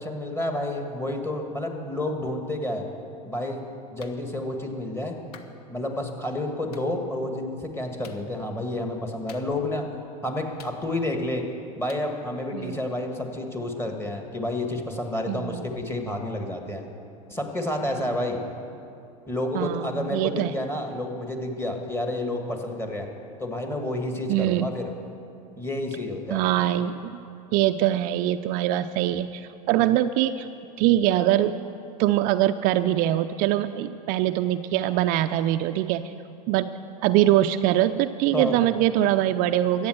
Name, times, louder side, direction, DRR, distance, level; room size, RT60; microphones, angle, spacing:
voice 1, 0.0-2.8 3.2-3.6 3.9-5.2 5.7-9.8 10.2-11.4 11.7-16.8 17.3-18.4 19.3-23.1 23.4-24.9 25.6-26.4 38.3-38.6, left 1 dB, 10° left, 3 dB, 1.8 m, -30 dB
Clapping, 4.0-4.2 5.3-5.5 6.7-6.9 8.0-8.3 9.3-9.8 10.6-11.2 11.9-12.1, left 6 dB, 75° left, 1.1 m, -48 dB
voice 2, 15.3-15.6 17.9-18.0 19.5-20.6 24.3-24.7 26.3-27.2 27.5-30.5 30.8-31.6 32.0-36.1 36.5-36.7 37.0-39.9, right 13 dB, 45° right, 9 dB, 0.4 m, -23 dB
13.5 x 8.7 x 7.9 m, 2.6 s
hypercardioid pair, 110°, 19 cm